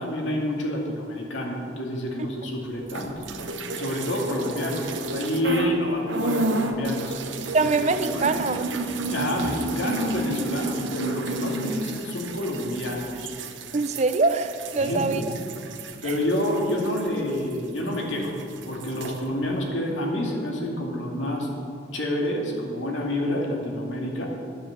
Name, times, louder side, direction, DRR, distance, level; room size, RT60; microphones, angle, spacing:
voice 1, 0.0-3.3 3.7-7.1 7.6-7.7 8.1-8.4 9.1-13.3 14.8-15.3 16.0-18.4 18.6-21.5 21.9-24.3, left 1 dB, 85° left, -1 dB, 2.4 m, -28 dB
sound 1, 2.8-5.8 6.1-18.0 18.2-19.2, right 2 dB, 85° right, 0.9 m, -32 dB
voice 2, 7.5-8.7 13.7-15.2 16.1-16.2, right 3 dB, 35° right, 10 dB, 0.5 m, -23 dB
10.0 x 9.0 x 7.3 m, 2.4 s
head